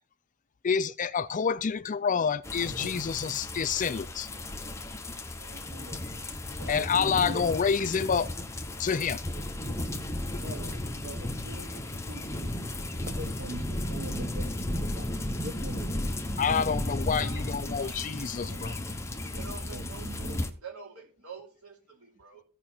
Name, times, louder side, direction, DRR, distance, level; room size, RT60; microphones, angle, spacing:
voice 1, 0.6-4.3 6.7-8.3 8.8-9.2 16.4-18.7, left 6 dB, 35° left, 0.4 m, -28 dB
sound 1, 2.4-20.5, left 1 dB, 10° left, 0.9 m, -34 dB
voice 2, 2.7-3.4 5.4-6.0 6.6-7.7 9.6-9.8 10.4-12.5 12.8-16.1 19.7-20.4, right 2 dB, 50° right, 0.9 m, -43 dB
voice 3, 16.9-22.4, right 5 dB, 75° right, 4.6 m, -48 dB
16.0 x 5.6 x 4.4 m
head